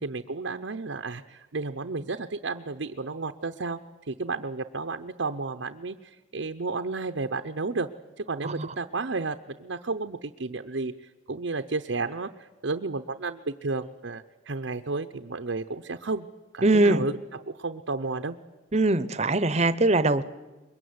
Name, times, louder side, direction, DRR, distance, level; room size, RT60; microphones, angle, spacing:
voice 1, 0.0-3.8 4.1-7.9 8.2-16.3 16.5-18.4, right 3 dB, 70° right, 7 dB, 0.8 m, -32 dB
voice 2, 16.6-17.0 18.7-20.2, right 2 dB, 35° right, 15 dB, 0.9 m, -22 dB
23.0 x 22.0 x 9.6 m, 1.1 s
head